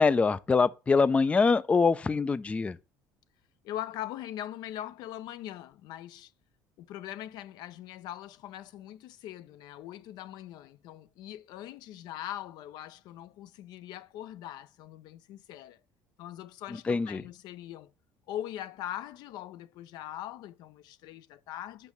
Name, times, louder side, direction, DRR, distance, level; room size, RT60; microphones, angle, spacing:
voice 1, 0.0-2.8 16.9-17.2, left 4 dB, 15° left, 0.4 m, -24 dB
voice 2, 3.6-6.3 6.8-15.8 16.2-17.9 18.3-21.9, left 12 dB, 70° left, 0.5 m, -41 dB
5.3 x 5.3 x 5.9 m
cardioid pair, 110°, 7 cm